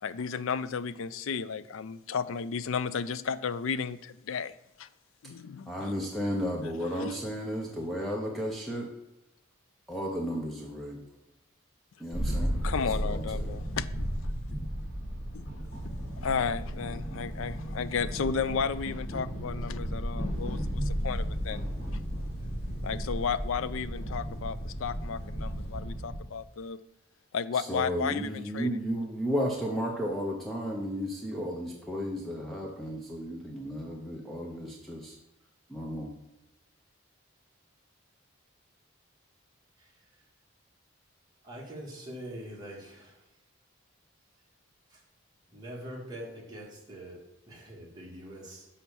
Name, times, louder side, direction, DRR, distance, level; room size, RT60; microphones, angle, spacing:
voice 1, 0.0-4.9 5.2-5.9 7.0-7.2 12.2-14.1 15.3-15.5 15.9-21.6 22.8-26.8 27.3-28.8, left 6 dB, 75° left, 15 dB, 0.4 m, -33 dB
voice 2, 5.7-8.9 9.9-11.0 12.0-13.6 27.5-35.2 35.7-36.1, equal, ahead, -1 dB, 0.8 m, -33 dB
sound 1, 12.1-26.2, equal, 30° left, 2.6 m, -34 dB
voice 3, 41.4-43.2 44.9-45.0 45.5-48.7, right 1 dB, 20° right, -4 dB, 2.1 m, -43 dB
6.1 x 5.6 x 7.0 m, 0.90 s
head